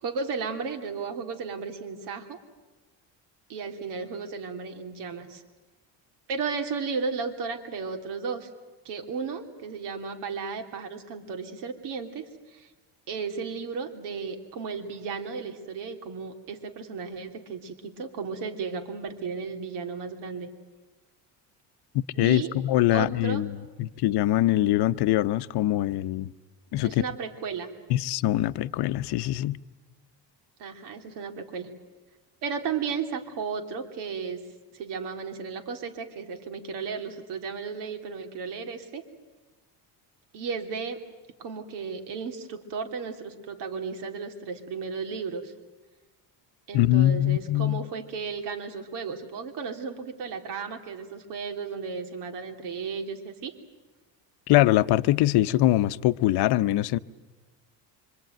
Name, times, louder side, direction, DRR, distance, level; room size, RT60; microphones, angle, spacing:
voice 1, 0.0-2.4 3.5-5.4 6.3-8.5 8.8-12.2 12.5-12.7 13.1-20.5 22.1-22.5 22.9-23.4 26.8-27.7 30.6-31.7 32.4-34.4 34.7-39.0 40.3-41.0 41.4-45.5 46.7-53.5, right 5 dB, 75° right, 3.1 m, -34 dB
voice 2, 21.9-23.5 23.8-26.3 26.7-27.0 27.9-29.6 46.7-47.9 54.5-57.0, left 14 dB, 70° left, 0.8 m, -23 dB
25.5 x 25.0 x 9.2 m
cardioid pair, 135°, 41 cm